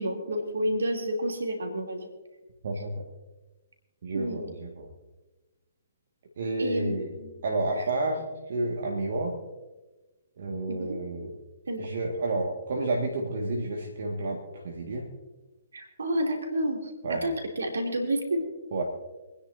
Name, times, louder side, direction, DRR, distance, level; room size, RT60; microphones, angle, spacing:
voice 1, 0.0-2.1 4.1-4.5 6.6-7.3 7.8-7.9 10.7-11.0 11.7-12.0 15.7-18.5, right 1 dB, 75° right, 1 dB, 2.9 m, -30 dB
voice 2, 2.6-3.0 4.0-4.9 6.4-7.1 7.4-8.2 8.5-9.4 10.4-11.3 11.8-15.1 17.0-17.3 18.7-18.8, right 2 dB, 60° right, 0 dB, 1.8 m, -30 dB
27.5 x 10.0 x 2.7 m, 1.1 s
figure-of-eight pair, 130°, 0 cm